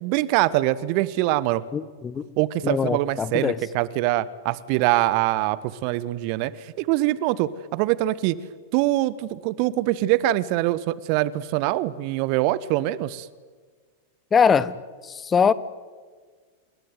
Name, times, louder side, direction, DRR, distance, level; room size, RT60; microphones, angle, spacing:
voice 1, 0.0-1.6 2.4-8.3 8.7-13.3, right 16 dB, 45° right, 19 dB, 1.1 m, -24 dB
voice 2, 1.7-2.2 2.6-3.6 14.3-14.7 15.0-15.5, left 6 dB, 20° left, 18 dB, 1.2 m, -21 dB
28.5 x 21.0 x 9.4 m, 1.5 s
figure-of-eight pair, 90°, 0 cm